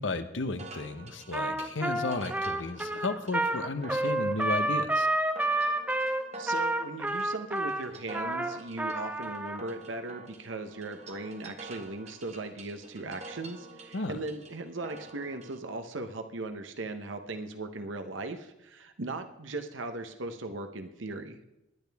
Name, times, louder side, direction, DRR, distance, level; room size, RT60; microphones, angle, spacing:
voice 1, 0.0-5.1 13.9-14.2, left 2 dB, 75° left, 9 dB, 1.0 m, -33 dB
sound 1, 0.6-15.6, right 3 dB, 35° right, 1.2 m, -48 dB
Trumpet, 1.3-9.6, right 1 dB, 10° right, 0.7 m, -29 dB
voice 2, 6.4-21.4, right 2 dB, 85° right, 7 dB, 1.0 m, -38 dB
20.0 x 10.5 x 3.5 m, 0.91 s
head